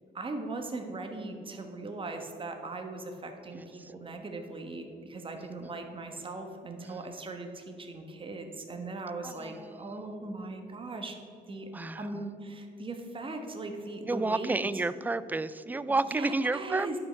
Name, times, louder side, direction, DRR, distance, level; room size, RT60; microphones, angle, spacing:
voice 1, 0.1-11.2 11.5-11.7 12.0-14.6 15.9-17.0, right 2 dB, 30° right, 4 dB, 1.4 m, -39 dB
voice 2, 3.5-3.9 5.6-5.7 6.8-7.0 9.2-10.1 11.7-12.2 14.1-16.9, right 3 dB, 10° right, 15 dB, 0.3 m, -32 dB
10.5 x 5.7 x 5.8 m, 2.6 s
cardioid pair, 105°, 18 cm